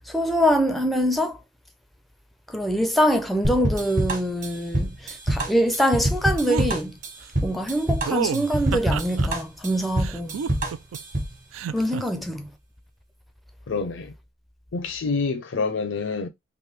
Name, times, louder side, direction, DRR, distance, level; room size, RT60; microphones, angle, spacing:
voice 1, 0.1-1.4 2.5-7.0 7.4-10.4 11.7-12.5, equal, ahead, 0.4 m, -24 dB
sound 1, 3.4-11.4, right 1 dB, 40° right, 1.3 m, -26 dB
sound 2, 6.5-6.7 8.1-9.3 10.0-11.0 11.5-12.0, right 7 dB, 85° right, 0.4 m, -29 dB
voice 2, 13.7-14.1 14.7-16.3, left 4 dB, 70° left, 0.5 m, -27 dB
3.3 x 2.6 x 3.1 m
head